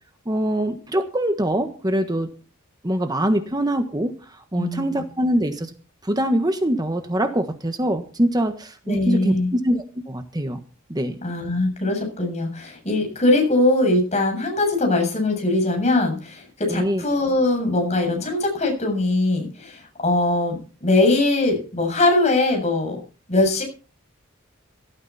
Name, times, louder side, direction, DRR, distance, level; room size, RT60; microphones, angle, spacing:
voice 1, 0.2-2.3 2.8-5.7 6.0-10.6 10.9-11.2 16.7-17.0, right 1 dB, 20° right, 7 dB, 1.4 m, -23 dB
voice 2, 4.6-5.0 8.9-9.5 11.2-23.0 23.3-23.6, left 2 dB, 35° left, 2 dB, 7.3 m, -21 dB
18.0 x 13.0 x 4.2 m, 0.37 s
head